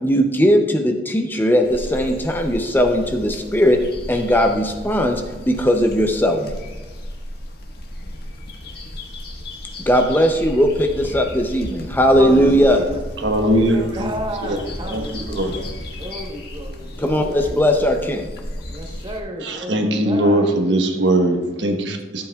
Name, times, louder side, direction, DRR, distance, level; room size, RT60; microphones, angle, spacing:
voice 1, 0.0-3.8 4.1-6.5 9.8-12.8 17.0-18.3, equal, 10° left, 0.6 m, -18 dB
sound 1, 1.6-19.2, left 1 dB, 60° left, 1.5 m, -34 dB
sound 2, 10.7-14.2 14.6-16.1 17.2-17.5, equal, 35° left, 2.5 m, -36 dB
voice 2, 12.2-13.0 13.3-15.7 16.0-17.6 18.7-20.5, equal, 25° right, 1.1 m, -32 dB
voice 3, 13.2-14.1 14.4-14.6 14.9-15.6 19.4-22.3, right 1 dB, 75° right, 1.2 m, -20 dB
13.5 x 8.4 x 2.4 m
head